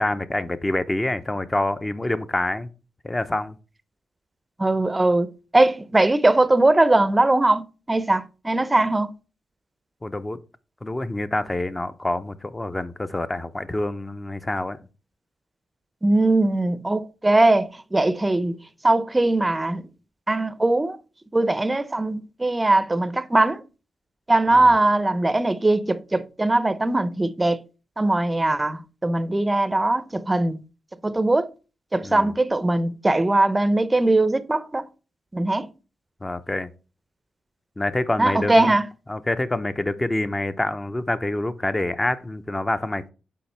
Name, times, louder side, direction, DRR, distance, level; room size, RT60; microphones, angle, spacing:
voice 1, 0.0-2.7 3.0-3.6 10.0-10.4 10.8-14.8 24.5-24.7 32.0-32.3 36.2-36.7 37.8-38.8 39.1-43.1, left 1 dB, 20° left, 0.7 m, -26 dB
voice 2, 4.6-9.1 16.0-18.6 18.8-19.9 20.3-21.0 21.3-23.6 24.3-27.6 28.0-30.6 31.0-31.5 31.9-34.8 35.3-35.7 38.2-38.9, right 2 dB, 20° right, 0.6 m, -20 dB
7.1 x 4.8 x 3.2 m
cardioid pair, 60°, 0 cm